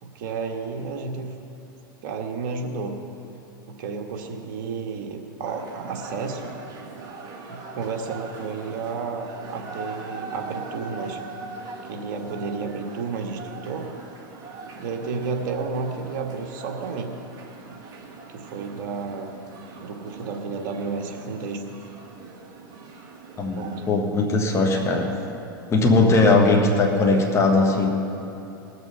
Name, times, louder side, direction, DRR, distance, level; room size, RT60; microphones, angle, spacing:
voice 1, 0.0-1.3 2.0-2.9 3.7-6.5 7.5-11.2 11.8-13.9 14.7-17.1 18.3-19.3 19.8-21.6 23.6-23.8 24.8-24.9 25.9-26.6, right 4 dB, 55° right, 3 dB, 1.6 m, -32 dB
Tokyo - Chanting Crowd, 5.4-23.9, right 4 dB, 35° right, 1.9 m, -41 dB
voice 2, 23.4-25.1 25.7-27.9, left 3 dB, 25° left, 2 dB, 1.5 m, -19 dB
20.0 x 6.7 x 5.5 m, 2.8 s
hypercardioid pair, 110°, 12 cm